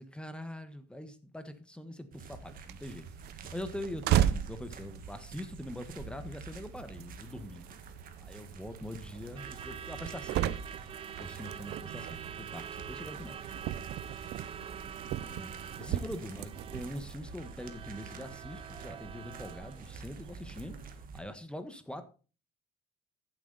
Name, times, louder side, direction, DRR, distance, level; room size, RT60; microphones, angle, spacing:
voice 1, 0.0-7.6 8.2-10.6 11.2-13.4 15.2-20.8 21.1-22.0, left 1 dB, 5° left, 1.4 m, -43 dB
sound 1, 2.1-21.2, right 5 dB, 55° right, 1.9 m, -48 dB
sound 2, 2.4-17.2, right 12 dB, 75° right, 0.7 m, -37 dB
voice 2, 7.5-8.0 14.5-15.1 15.8-16.3, left 6 dB, 85° left, 2.7 m, -65 dB
Truck / Alarm, 9.1-21.1, right 8 dB, 35° right, 0.4 m, -46 dB
14.5 x 7.7 x 4.1 m
cardioid pair, 110°, 17 cm